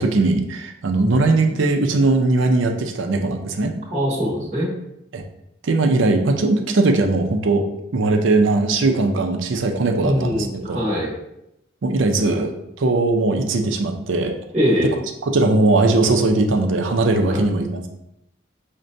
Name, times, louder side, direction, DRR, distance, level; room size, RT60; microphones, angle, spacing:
voice 1, 0.0-3.7 5.1-5.2 5.6-10.8 11.8-14.3 15.3-17.9, right 2 dB, 75° right, 4 dB, 0.5 m, -19 dB
voice 2, 3.9-4.7 10.0-11.1 14.5-14.9 17.3-17.4, equal, 35° right, -6 dB, 1.0 m, -22 dB
6.2 x 2.2 x 2.6 m, 0.83 s
head